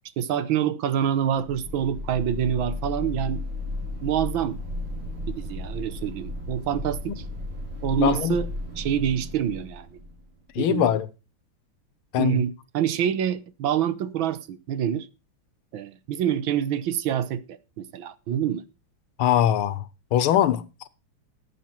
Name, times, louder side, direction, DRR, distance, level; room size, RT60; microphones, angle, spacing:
voice 1, 0.2-3.4 4.0-4.6 5.3-7.2 7.8-8.5 8.8-10.0 10.6-10.9 12.2-15.1 15.7-18.6, right 9 dB, 70° right, 1.6 m, -26 dB
sound 1, 1.2-10.5, left 2 dB, 90° right, 4.3 m, -34 dB
voice 2, 8.0-8.4 10.5-11.1 12.1-12.4 19.2-19.8 20.1-20.9, left 11 dB, 85° left, 1.8 m, -22 dB
13.5 x 8.3 x 4.4 m
omnidirectional pair, 2.4 m